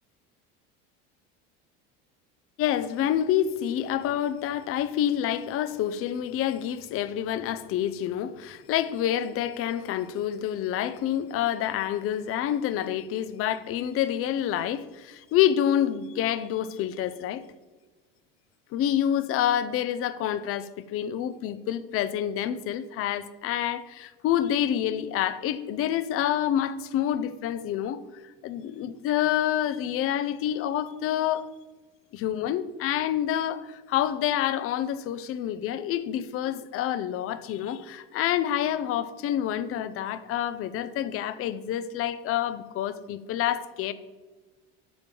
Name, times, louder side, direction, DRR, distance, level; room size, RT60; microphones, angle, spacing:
voice 1, 2.6-17.4 18.7-28.0 28.4-31.4 32.1-43.9, left 11 dB, 45° left, 0.6 m, -27 dB
6.7 x 4.9 x 5.2 m
supercardioid pair, 110°, 30 cm